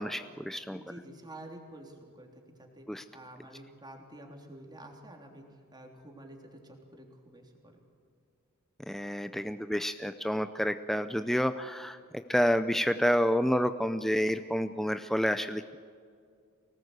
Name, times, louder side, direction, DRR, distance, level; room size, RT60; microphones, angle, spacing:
voice 1, 0.0-0.8 2.9-3.0 8.9-12.0 12.3-15.8, equal, ahead, 10 dB, 0.5 m, -29 dB
voice 2, 0.7-2.9 3.1-5.4 5.7-7.8, right 1 dB, 20° right, 2 dB, 3.4 m, -49 dB
24.0 x 18.5 x 8.1 m, 2.3 s
head